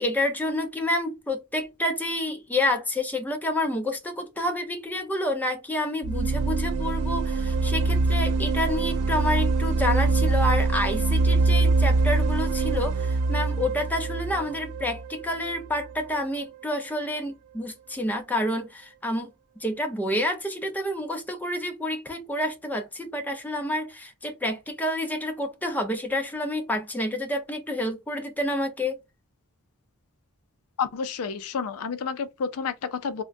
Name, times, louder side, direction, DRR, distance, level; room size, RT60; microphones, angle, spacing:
voice 1, 0.0-19.3 19.6-29.0, left 1 dB, 10° left, 0.6 m, -29 dB
sound 1, 6.0-15.8, right 3 dB, 85° right, 0.4 m, -24 dB
voice 2, 30.8-33.2, left 6 dB, 70° left, 0.4 m, -30 dB
3.6 x 2.1 x 2.5 m
head